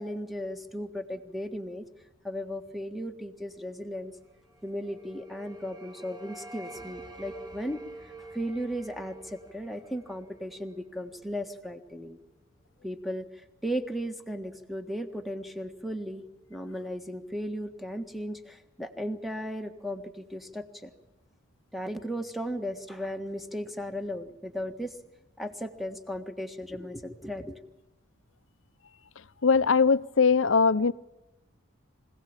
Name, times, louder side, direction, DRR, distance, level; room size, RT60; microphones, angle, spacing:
voice 1, 0.0-1.9 2.2-4.2 4.6-12.2 12.8-20.9 21.7-25.0 25.4-27.6, equal, ahead, 1.5 m, -36 dB
sound 1, 4.5-11.5, right 2 dB, 20° right, 2.1 m, -47 dB
voice 2, 29.4-30.9, left 5 dB, 70° left, 0.7 m, -21 dB
25.5 x 17.5 x 8.8 m
head